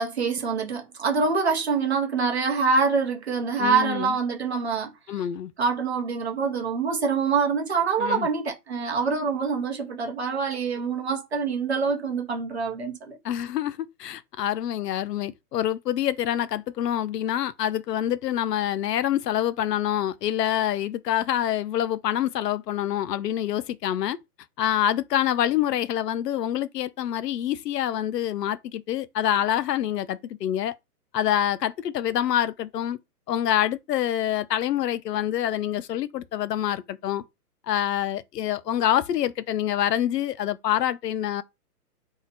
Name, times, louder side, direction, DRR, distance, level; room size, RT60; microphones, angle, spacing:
voice 1, 0.0-5.2 5.6-13.2, right 5 dB, 40° right, 0.7 m, -25 dB
voice 2, 3.6-4.1 5.1-5.5 8.0-8.3 13.2-24.2 24.6-30.7 31.1-33.0 33.3-37.2 37.7-41.4, left 11 dB, 80° left, 0.5 m, -26 dB
2.7 x 2.1 x 4.0 m
hypercardioid pair, 175°, 48 cm